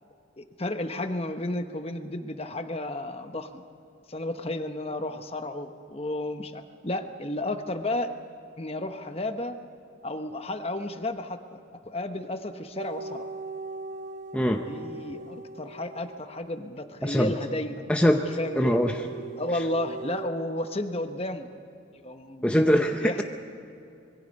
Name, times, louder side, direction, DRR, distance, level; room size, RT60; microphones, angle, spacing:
voice 1, 0.4-3.6 4.1-8.1 8.6-9.6 10.0-13.3 14.6-17.9 18.4-18.8 19.4-21.5 22.0-22.6 23.0-23.2, left 1 dB, 30° left, 8 dB, 1.0 m, -32 dB
sound 1, 12.8-16.8 18.1-20.3, right 3 dB, 35° right, 1.0 m, -40 dB
voice 2, 14.3-14.6 17.0-17.3 17.9-18.3 18.5-19.0 22.4-23.2, equal, 5° left, 3 dB, 0.7 m, -22 dB
26.0 x 22.5 x 5.4 m, 2.7 s
head